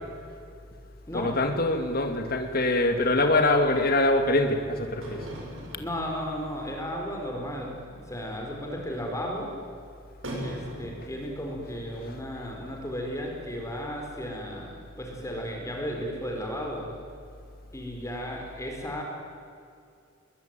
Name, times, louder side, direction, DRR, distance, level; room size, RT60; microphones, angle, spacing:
voice 1, 1.1-5.3, left 2 dB, 50° left, 5 dB, 2.5 m, -24 dB
sound 1, 4.9-6.9 7.2-7.3 7.6-7.7 8.0-8.3 8.6-8.7 10.2-12.1 12.4-12.5 12.9-13.0 13.3-13.4, right 1 dB, 75° right, 6.9 m, -40 dB
voice 2, 5.7-9.5 10.4-16.9 17.7-19.0, equal, 15° left, 0 dB, 4.7 m, -34 dB
22.5 x 22.5 x 9.2 m, 2.4 s
head